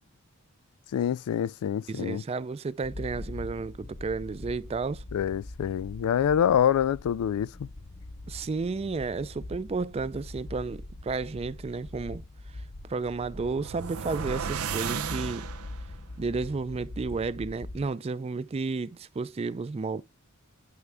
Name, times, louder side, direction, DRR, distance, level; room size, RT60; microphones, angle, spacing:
voice 1, 0.9-2.2 5.1-7.7, left 9 dB, 90° left, 0.3 m, -26 dB
voice 2, 1.9-5.0 8.3-12.2 12.9-15.5 16.2-20.0, right 4 dB, 25° right, 0.3 m, -32 dB
sound 1, 2.8-17.9, left 2 dB, 30° left, 0.5 m, -43 dB
sound 2, 13.1-15.9, right 7 dB, 85° right, 0.7 m, -35 dB
9.4 x 3.2 x 3.5 m
head